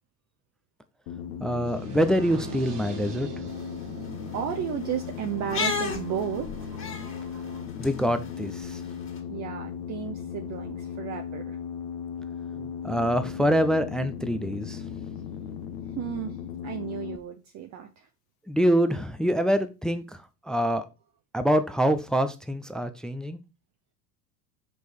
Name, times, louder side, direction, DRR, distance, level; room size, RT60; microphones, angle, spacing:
sound 1, 1.1-17.2, left 8 dB, 60° left, 1.0 m, -37 dB
voice 1, 1.4-3.3 7.8-8.8 12.8-14.8 18.5-20.2 20.4-20.9 21.3-23.4, equal, ahead, 0.4 m, -25 dB
sound 2, 1.7-7.6, right 8 dB, 70° right, 1.6 m, -44 dB
sound 3, 3.5-9.2, left 5 dB, 25° left, 2.1 m, -36 dB
voice 2, 4.3-6.7 9.3-11.6 12.5-12.7 16.0-16.4 16.6-18.1, right 9 dB, 35° right, 0.8 m, -34 dB
6.1 x 5.4 x 4.5 m
figure-of-eight pair, 75°, 47 cm